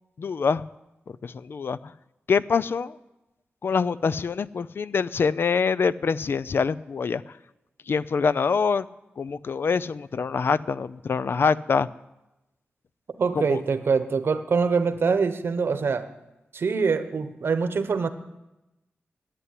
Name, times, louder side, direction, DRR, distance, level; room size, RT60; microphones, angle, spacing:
voice 1, 0.2-0.6 1.2-1.8 2.3-3.0 3.6-7.2 7.9-8.9 9.2-11.9 13.4-13.6, left 5 dB, 65° left, 16 dB, 0.5 m, -25 dB
voice 2, 13.2-16.1 16.5-18.1, right 5 dB, 70° right, 10 dB, 1.1 m, -24 dB
11.0 x 9.7 x 9.5 m, 0.96 s
wide cardioid pair, 75°, 4 cm